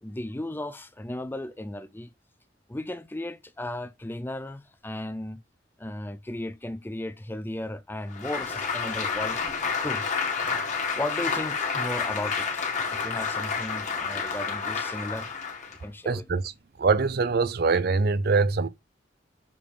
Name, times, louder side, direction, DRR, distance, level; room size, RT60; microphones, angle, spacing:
voice 1, 0.0-2.1 2.7-5.4 5.8-9.4 9.8-10.4 11.0-15.3 15.8-16.3, left 1 dB, 10° left, 0.5 m, -35 dB
Applause, 8.1-15.8, left 5 dB, 40° left, 1.7 m, -30 dB
voice 2, 16.1-16.5 16.8-18.7, right 4 dB, 55° right, 0.5 m, -23 dB
6.8 x 3.4 x 5.1 m
head